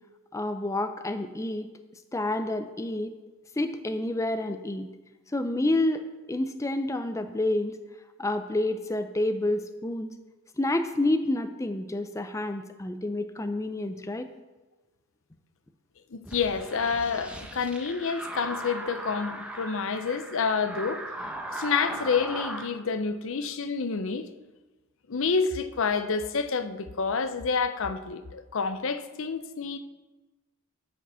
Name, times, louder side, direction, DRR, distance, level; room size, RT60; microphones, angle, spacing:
voice 1, 0.3-1.7 2.1-3.1 3.6-4.9 5.3-6.0 6.3-7.8 8.2-10.1 10.6-14.3, left 1 dB, 15° left, 0.4 m, -28 dB
voice 2, 16.1-21.0 21.5-24.3 25.1-29.8, left 5 dB, 60° left, 0.6 m, -28 dB
sound 1, 16.2-22.7, right 1 dB, 5° right, 0.8 m, -38 dB
9.8 x 5.1 x 6.8 m
head